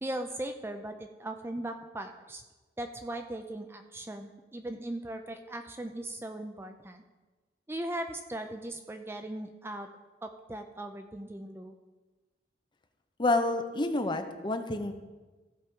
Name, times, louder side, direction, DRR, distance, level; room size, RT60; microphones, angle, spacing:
voice 1, 0.0-2.4 2.8-7.0 7.7-9.9 10.2-11.7, right 1 dB, 15° right, 6 dB, 0.4 m, -38 dB
voice 2, 13.2-14.9, left 2 dB, 25° left, 7 dB, 0.7 m, -28 dB
15.5 x 5.3 x 4.5 m, 1.2 s
head